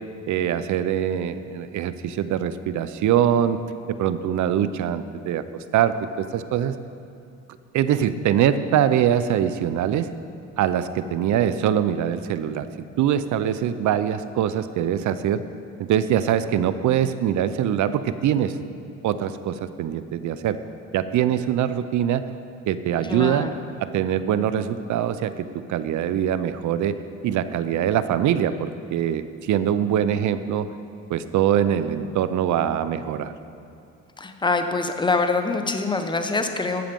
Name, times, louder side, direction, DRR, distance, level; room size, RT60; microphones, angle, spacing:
voice 1, 0.3-3.6 3.9-5.4 5.7-6.7 7.7-10.1 10.6-12.7 13.0-15.4 15.8-18.5 19.0-20.6 20.9-22.2 22.7-23.5 23.8-27.0 27.2-30.7 31.1-33.3, right 10 dB, 70° right, 13 dB, 0.6 m, -23 dB
voice 2, 23.0-23.6 34.2-36.8, left 3 dB, 15° left, 6 dB, 0.9 m, -24 dB
12.5 x 7.3 x 5.2 m, 2.5 s
cardioid pair, 90°, 30 cm